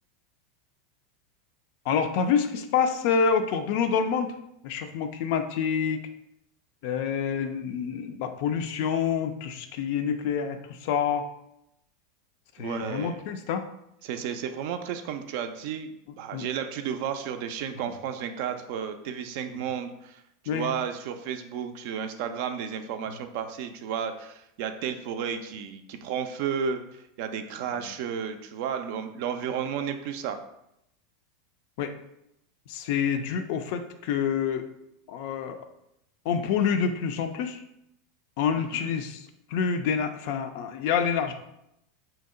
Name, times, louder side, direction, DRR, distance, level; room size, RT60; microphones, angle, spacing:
voice 1, 1.9-4.3 4.6-6.0 6.8-11.3 12.6-13.7 16.3-16.5 20.5-20.7 27.8-27.9 31.8-31.9 32.7-34.6 35.1-35.6 36.3-37.6 38.4-41.3, left 7 dB, 60° left, 7 dB, 0.3 m, -27 dB
voice 2, 12.6-13.2 14.0-20.2 20.5-26.8 27.2-30.4 38.7-38.9, right 7 dB, 60° right, 8 dB, 0.3 m, -32 dB
2.8 x 2.1 x 3.6 m, 0.80 s
hypercardioid pair, 85°, 0 cm